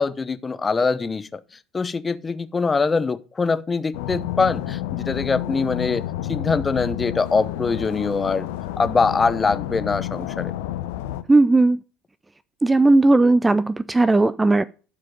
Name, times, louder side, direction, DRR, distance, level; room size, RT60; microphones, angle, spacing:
voice 1, 0.0-1.4 1.7-6.0 6.3-8.5 8.8-10.5, left 4 dB, 25° left, 0.8 m, -23 dB
sound 1, 3.9-11.2, left 13 dB, 70° left, 0.7 m, -30 dB
voice 2, 11.3-11.8 12.6-14.6, right 2 dB, 15° right, 0.4 m, -16 dB
12.0 x 4.9 x 5.1 m
figure-of-eight pair, 65°, 0 cm